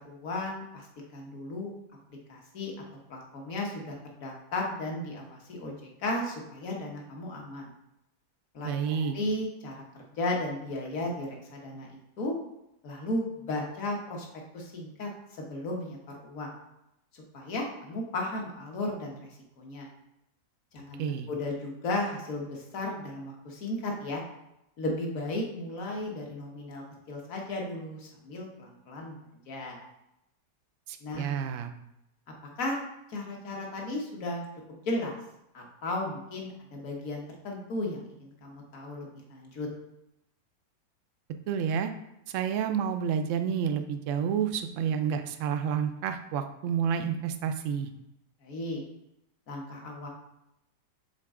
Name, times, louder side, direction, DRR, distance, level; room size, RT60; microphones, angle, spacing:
voice 1, 0.0-0.9 1.1-1.7 2.3-2.7 3.1-5.7 6.0-7.7 8.5-12.4 12.8-14.2 14.5-16.5 17.1-19.3 19.6-19.9 20.7-21.0 21.3-24.2 24.8-29.2 29.5-29.9 31.0-31.4 32.6-32.8 33.1-35.2 35.5-39.7 48.4-48.8 49.5-50.1, left 2 dB, 55° left, 0 dB, 1.5 m, -35 dB
voice 2, 8.6-9.2 21.0-21.3 30.9-31.7 41.5-41.9 42.3-47.9, right 7 dB, 80° right, 8 dB, 0.7 m, -29 dB
6.7 x 3.9 x 3.6 m, 0.85 s
omnidirectional pair, 1.8 m